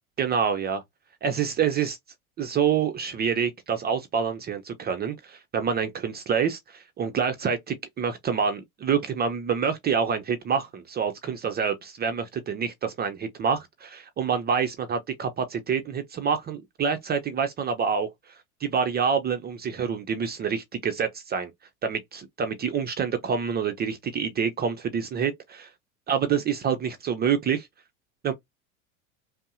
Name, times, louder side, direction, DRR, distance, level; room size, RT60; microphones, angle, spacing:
voice 1, 0.2-0.8 1.2-2.0 2.4-18.1 18.6-21.5 21.8-25.7 26.1-27.7 28.2-28.3, right 7 dB, 25° right, 0.5 m, -27 dB
5.2 x 2.0 x 2.5 m
hypercardioid pair, 80°, 43 cm